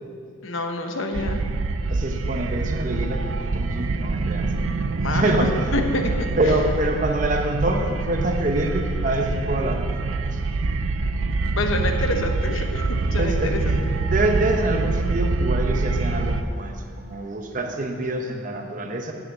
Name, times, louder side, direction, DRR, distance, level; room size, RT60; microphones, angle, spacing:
voice 1, 0.4-1.5 5.0-6.3 11.5-13.8, left 2 dB, 70° left, 4 dB, 1.0 m, -27 dB
sound 1, 1.1-16.4, right 3 dB, 75° right, 0.5 m, -25 dB
sound 2, 1.8-7.3, right 1 dB, 10° right, 1.8 m, -42 dB
voice 2, 1.9-4.5 5.1-5.5 6.4-10.0 10.3-10.7 13.2-19.1, right 1 dB, 40° right, 4 dB, 0.8 m, -26 dB
8.4 x 6.8 x 7.7 m, 2.3 s
head